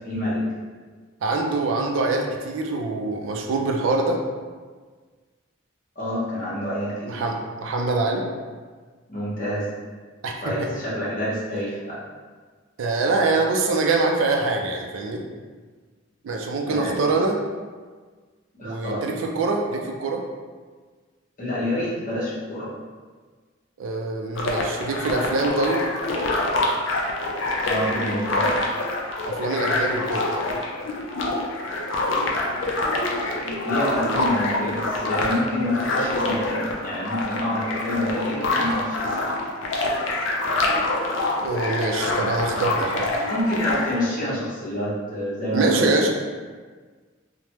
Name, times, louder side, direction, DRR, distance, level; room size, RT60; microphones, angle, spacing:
voice 1, 0.0-0.4 6.0-7.2 9.1-9.7 10.4-12.0 16.6-17.0 18.5-19.0 21.4-22.7 27.6-28.5 33.6-39.3 43.3-46.1, left 1 dB, 40° left, -7 dB, 0.8 m, -27 dB
voice 2, 1.2-4.2 7.1-8.3 10.2-10.7 12.8-15.2 16.2-17.4 18.6-20.2 23.8-25.8 29.3-30.3 34.1-34.3 41.4-43.1 45.5-46.1, right 3 dB, 75° right, 2 dB, 0.4 m, -24 dB
sound 1, 24.4-44.0, left 2 dB, 65° left, 0.4 m, -26 dB
3.2 x 2.1 x 2.9 m, 1.5 s
head